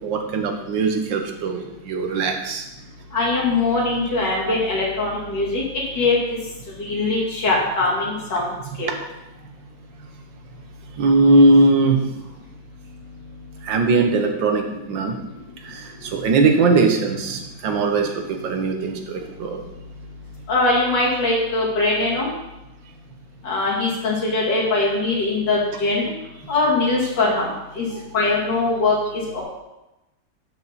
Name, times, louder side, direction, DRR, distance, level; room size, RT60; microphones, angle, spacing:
voice 1, 0.0-2.6 4.4-4.5 8.9-9.0 11.0-12.0 13.6-15.2 15.6-19.6 22.0-22.1 27.9-28.0, right 3 dB, 75° right, 4 dB, 1.7 m, -20 dB
voice 2, 3.1-5.6 5.9-6.2 6.8-8.5 8.8-8.9 20.5-22.3 23.4-26.0 26.5-27.5 27.8-27.9 28.1-29.4, left 3 dB, 65° left, -4 dB, 3.0 m, -21 dB
12.0 x 5.4 x 4.1 m, 0.97 s
omnidirectional pair, 2.1 m